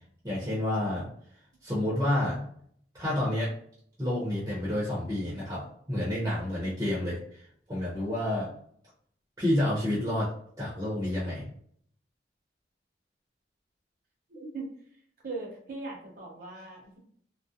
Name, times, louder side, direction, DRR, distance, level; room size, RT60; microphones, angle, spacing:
voice 1, 0.2-1.1 1.6-2.5 2.9-3.5 4.0-7.2 7.7-8.5 9.4-10.3 10.6-11.4, left 1 dB, 15° right, -8 dB, 0.7 m, -29 dB
voice 2, 14.3-14.7 15.2-17.0, right 3 dB, 50° right, -2 dB, 0.8 m, -39 dB
2.4 x 2.0 x 2.7 m, 0.63 s
head